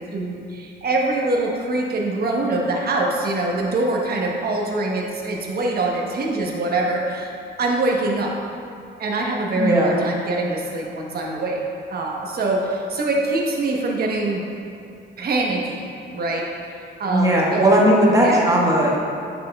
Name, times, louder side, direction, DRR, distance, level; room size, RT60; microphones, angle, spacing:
voice 1, 0.0-7.3 7.6-8.3 9.0-11.6 11.9-14.4 15.2-16.5 17.0-17.8 18.2-18.4, right 2 dB, 50° right, -1 dB, 1.1 m, -24 dB
voice 2, 9.6-10.0 17.1-19.0, equal, 15° right, -3 dB, 1.3 m, -17 dB
8.5 x 6.0 x 2.3 m, 2.5 s
cardioid pair, 90°, 20 cm